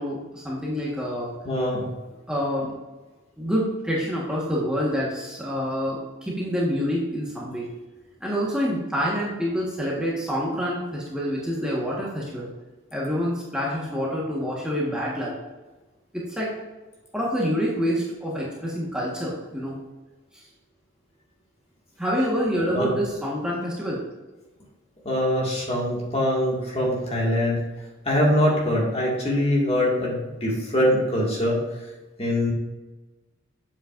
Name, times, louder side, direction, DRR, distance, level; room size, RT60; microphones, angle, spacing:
voice 1, 0.0-1.3 2.3-2.7 3.4-7.7 8.2-12.5 12.9-15.3 16.1-16.5 17.1-19.8 20.3-20.4 22.0-24.0, equal, 5° right, -5 dB, 1.4 m, -27 dB
voice 2, 1.4-1.9 22.7-22.9 25.0-27.7 28.0-31.8 32.2-32.5, left 1 dB, 30° left, -3 dB, 2.0 m, -23 dB
8.5 x 7.6 x 2.6 m, 1.2 s
head